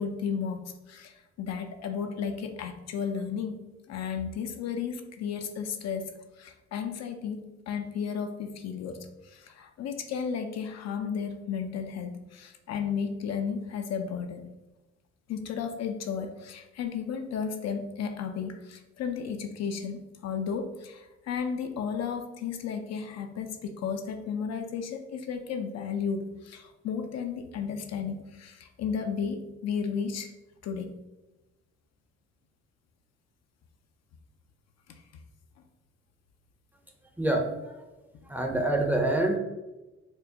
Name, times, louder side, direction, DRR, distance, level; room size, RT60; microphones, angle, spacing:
voice 1, 0.0-3.6 3.9-6.1 6.4-14.5 15.3-30.3 30.6-31.0 34.9-35.0, left 6 dB, 60° left, 6 dB, 0.5 m, -33 dB
voice 2, 37.2-37.8 38.2-39.4, right 1 dB, 5° right, 2 dB, 0.5 m, -26 dB
4.3 x 2.2 x 2.7 m, 1.1 s
cardioid pair, 90°, 30 cm